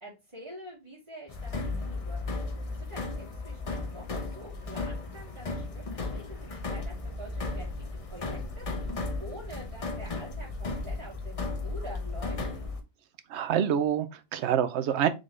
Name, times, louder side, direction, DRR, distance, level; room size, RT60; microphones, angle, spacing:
voice 1, 0.0-12.4, equal, 30° right, 1.9 m, -47 dB
sound 1, 1.3-12.8, left 3 dB, 35° left, 0.7 m, -35 dB
voice 2, 13.3-15.1, right 9 dB, 75° right, 0.9 m, -26 dB
3.8 x 3.6 x 3.2 m
omnidirectional pair, 1.2 m